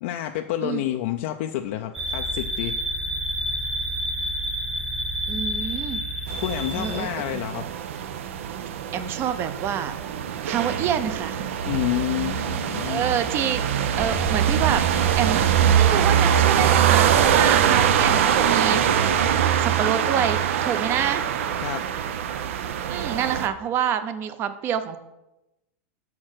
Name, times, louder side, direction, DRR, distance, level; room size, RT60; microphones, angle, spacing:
voice 1, 0.0-2.7 6.4-7.7 11.7-13.0 21.6-21.8, left 13 dB, 60° left, 5 dB, 0.5 m, -28 dB
sound 1, 1.9-7.0, equal, ahead, 1.0 m, -29 dB
voice 2, 5.3-6.0 6.7-7.1 8.9-10.0 10.4-11.5 12.9-13.6 14.0-14.8 15.2-19.1 19.6-21.3 22.9-25.0, right 9 dB, 35° right, 11 dB, 0.7 m, -27 dB
sound 2, 6.3-23.5, right 9 dB, 80° right, 0.7 m, -23 dB
sound 3, 13.9-19.5, right 3 dB, 55° right, 2.2 m, -35 dB
6.3 x 5.9 x 6.4 m, 0.96 s
supercardioid pair, 145°, 7 cm